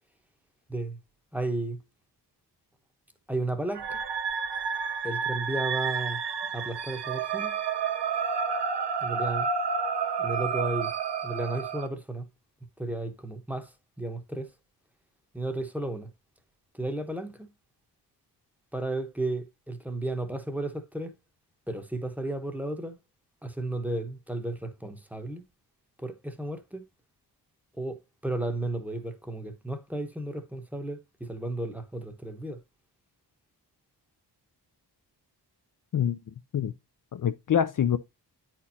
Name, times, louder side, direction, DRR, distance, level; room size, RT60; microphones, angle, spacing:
voice 1, 1.3-1.8 3.3-4.0 5.0-6.2 6.5-7.6 9.0-9.5 10.2-10.9 11.2-12.2 12.8-13.7 14.0-14.5 15.3-16.1 16.7-17.5 18.7-21.1 21.7-23.0 23.4-25.4 26.0-26.8 27.8-28.0 28.2-32.6, right 2 dB, 5° right, 0.9 m, -33 dB
sound 1, 3.7-11.9, right 6 dB, 80° right, 0.8 m, -30 dB
voice 2, 37.1-38.0, left 9 dB, 50° left, 0.5 m, -25 dB
9.6 x 4.4 x 2.7 m
wide cardioid pair, 175°, 41 cm